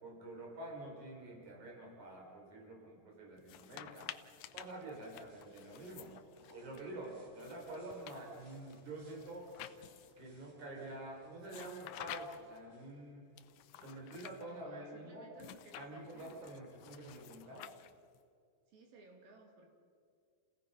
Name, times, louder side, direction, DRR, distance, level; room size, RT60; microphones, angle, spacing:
voice 1, 0.0-4.1 4.5-6.1 6.5-9.5 10.2-13.3 13.8-15.3 15.8-17.7, right 2 dB, 55° right, 0 dB, 5.3 m, -48 dB
sound 1, 3.4-6.8 7.4-10.3 11.4-12.6 13.4-14.5 15.4-18.2, left 13 dB, 85° left, 1.7 m, -52 dB
sound 2, 4.2-14.3, left 1 dB, 30° right, 6.4 m, -67 dB
voice 2, 14.5-16.4 18.7-19.7, right 3 dB, 80° right, 1 dB, 4.2 m, -59 dB
29.5 x 17.5 x 5.6 m, 2.3 s
omnidirectional pair, 4.2 m